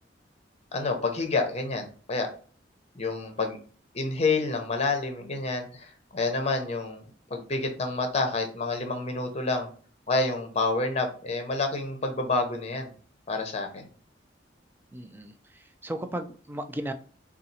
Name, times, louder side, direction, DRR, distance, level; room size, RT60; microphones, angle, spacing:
voice 1, 0.7-2.3 2.9-3.6 3.9-7.0 7.3-9.7 10.1-12.9 13.3-13.9, left 3 dB, 35° left, 5 dB, 0.7 m, -28 dB
voice 2, 14.9-16.9, right 1 dB, 10° right, 8 dB, 0.3 m, -36 dB
4.1 x 2.4 x 2.7 m, 0.42 s
head